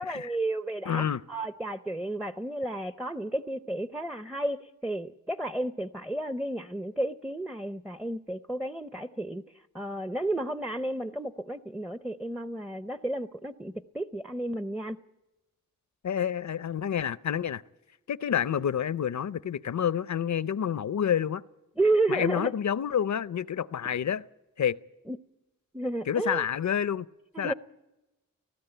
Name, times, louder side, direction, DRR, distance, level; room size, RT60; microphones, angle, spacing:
voice 1, 0.0-15.0 21.8-22.5 25.1-25.2 25.7-26.4 27.3-27.5, right 2 dB, ahead, 0.6 m, -32 dB
voice 2, 0.9-1.2 16.0-17.6 18.1-21.4 22.1-24.2 24.6-24.8 26.1-27.1 27.4-27.5, left 8 dB, 60° left, 0.6 m, -28 dB
19.5 x 15.0 x 9.1 m
cardioid pair, 60°, 33 cm